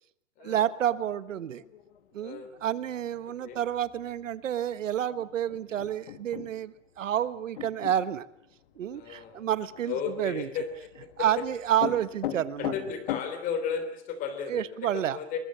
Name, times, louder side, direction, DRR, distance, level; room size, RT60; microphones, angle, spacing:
voice 1, 0.4-1.6 2.1-8.3 8.8-10.5 11.2-12.7 14.5-15.2, right 10 dB, 85° right, 15 dB, 1.4 m, -29 dB
sound 1, 0.8-13.2, left 12 dB, 45° left, 2.2 m, -42 dB
voice 2, 2.2-2.5 3.4-3.6 8.9-9.5 9.9-10.7 11.0-11.3 12.6-14.6 14.9-15.4, left 7 dB, 20° left, 9 dB, 3.3 m, -34 dB
23.0 x 21.5 x 7.6 m, 0.71 s
hypercardioid pair, 165°, 37 cm